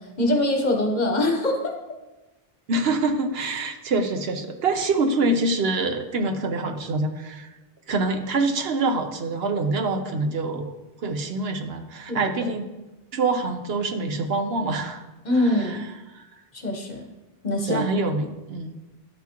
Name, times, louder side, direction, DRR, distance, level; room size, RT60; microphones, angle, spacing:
voice 1, 0.2-1.7 12.1-12.5 15.2-15.9 16.5-17.1 17.4-17.9, left 1 dB, 45° left, 2 dB, 1.1 m, -23 dB
voice 2, 2.7-7.5 7.9-10.7 11.0-12.7 13.1-15.0 15.4-15.8 16.1-16.2 17.7-18.7, right 3 dB, 75° right, 6 dB, 1.0 m, -25 dB
12.0 x 5.9 x 2.9 m, 1.1 s
omnidirectional pair, 1.0 m